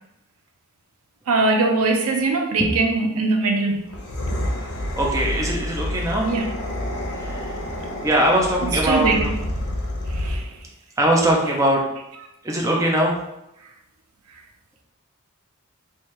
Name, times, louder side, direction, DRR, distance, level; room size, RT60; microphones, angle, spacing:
voice 1, 1.3-3.8 6.2-6.5 8.9-9.2 10.2-10.4, right 3 dB, 80° right, 3 dB, 0.5 m, -21 dB
sound 1, 3.8-10.6, left 1 dB, 75° left, 0.8 m, -28 dB
voice 2, 4.5-6.3 7.1-7.6 8.0-9.3 11.0-11.8 12.4-13.2, right 1 dB, 15° right, -1 dB, 0.5 m, -21 dB
3.1 x 2.3 x 4.3 m, 0.88 s
head